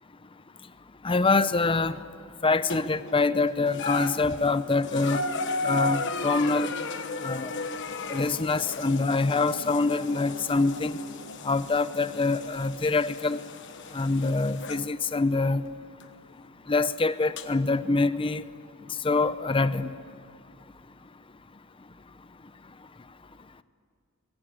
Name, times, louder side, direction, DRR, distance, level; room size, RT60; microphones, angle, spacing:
voice 1, 1.0-2.0 2.4-5.2 5.6-6.7 7.2-7.5 8.1-11.0 11.4-13.4 13.9-15.6 16.7-18.4 19.0-19.9, left 3 dB, 25° left, 14 dB, 0.7 m, -25 dB
sound 1, 2.7-3.2 3.7-14.9 16.0-16.1 17.4-17.5, left 3 dB, 60° left, 1.3 m, -35 dB
22.0 x 19.5 x 8.6 m, 2.2 s
head